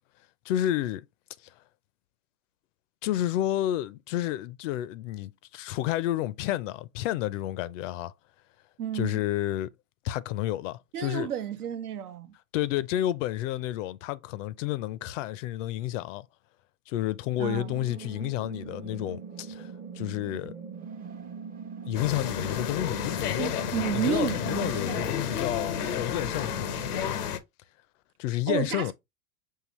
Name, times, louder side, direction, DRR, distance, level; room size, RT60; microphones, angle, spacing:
voice 1, 0.5-1.0 3.0-8.1 8.9-9.7 10.0-11.3 12.5-16.3 16.9-20.5 21.9-23.5 23.9-26.9 28.2-28.9, left 13 dB, 55° left, 0.5 m, -30 dB
voice 2, 8.8-9.2 10.9-12.3 17.4-17.7 23.4-25.2 28.5-28.9, right 9 dB, 80° right, 0.8 m, -32 dB
sound 1, 17.4-27.1, right 5 dB, 20° right, 0.5 m, -42 dB
sound 2, 21.9-27.4, left 9 dB, 90° left, 0.7 m, -31 dB
5.6 x 2.8 x 3.0 m
hypercardioid pair, 100°, 45 cm